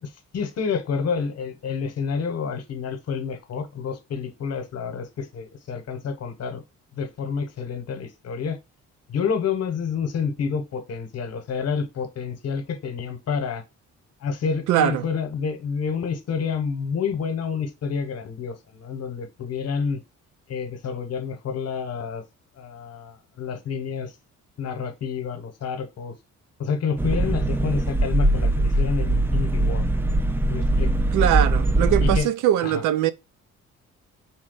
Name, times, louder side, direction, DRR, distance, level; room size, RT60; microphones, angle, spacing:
voice 1, 0.0-6.6 7.0-8.6 9.1-13.6 14.2-20.0 20.5-22.2 22.6-24.1 24.6-26.1 26.6-29.8 30.5-30.9 32.0-32.3 32.6-32.8, left 6 dB, 55° left, 0.9 m, -29 dB
voice 2, 14.7-15.1 31.1-33.1, right 11 dB, 85° right, 0.5 m, -21 dB
sound 1, 27.0-32.2, right 2 dB, 10° right, 0.3 m, -21 dB
4.1 x 2.3 x 3.8 m
cardioid pair, 90°, 30 cm